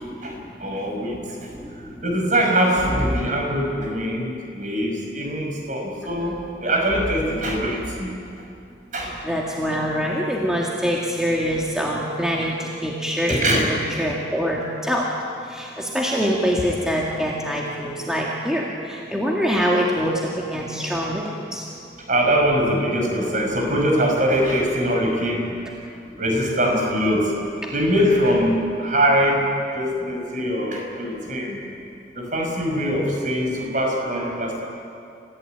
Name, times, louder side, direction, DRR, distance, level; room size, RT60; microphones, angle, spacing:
voice 1, 0.2-1.4 2.0-8.1 8.9-9.1 13.3-13.7 17.5-17.6 18.0-18.1 22.1-25.7 26.2-27.3 27.7-31.6 32.1-34.6, equal, 45° right, 1 dB, 5.4 m, -22 dB
voice 2, 9.0-12.6 12.8-15.1 15.5-21.6, equal, 5° right, -3 dB, 2.0 m, -24 dB
28.5 x 15.5 x 8.9 m, 2.5 s
head